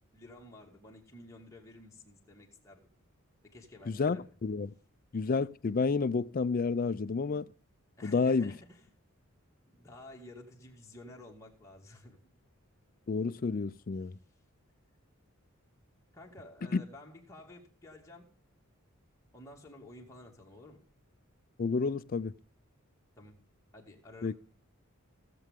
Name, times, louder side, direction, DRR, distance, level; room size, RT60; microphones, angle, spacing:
voice 1, 0.1-2.9 3.4-4.2 8.0-8.9 9.7-12.2 16.1-18.3 19.3-20.8 23.2-23.4 23.7-24.3, left 1 dB, 15° left, 2.2 m, -52 dB
voice 2, 3.9-4.7 5.1-7.5 8.0-8.5 13.1-14.1 16.7-16.8 21.6-22.3 24.2-24.3, left 4 dB, 40° left, 0.4 m, -30 dB
16.5 x 7.7 x 3.6 m
head